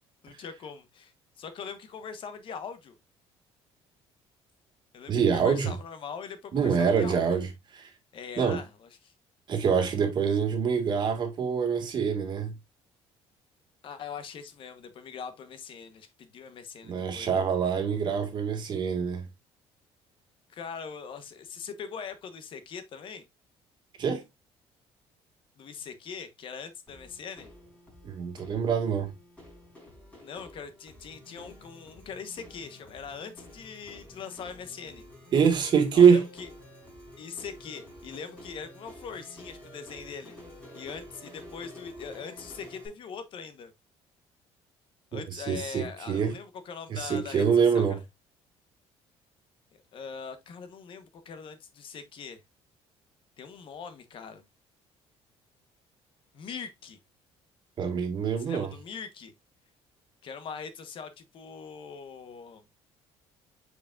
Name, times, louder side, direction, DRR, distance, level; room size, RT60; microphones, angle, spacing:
voice 1, 0.2-1.1 1.4-3.0 4.9-7.3 8.1-9.1 13.8-17.4 20.5-23.2 25.6-27.5 30.2-35.0 35.9-36.5 37.2-40.4 40.7-43.7 45.1-48.0 49.9-52.4 53.4-54.4 56.3-57.0 58.4-59.3 60.2-62.6, left 6 dB, 50° left, 1.1 m, -42 dB
voice 2, 5.1-5.7 6.5-7.5 7.7-7.9 8.4-8.6 9.5-12.5 16.8-19.3 24.0-24.2 28.0-29.1 35.3-36.2 45.1-46.4 46.9-48.0 57.8-58.7, right 6 dB, 45° right, 1.9 m, -25 dB
sound 1, 26.9-42.9, left 1 dB, 10° left, 4.8 m, -50 dB
8.1 x 4.8 x 2.5 m
cardioid pair, 140°, 11 cm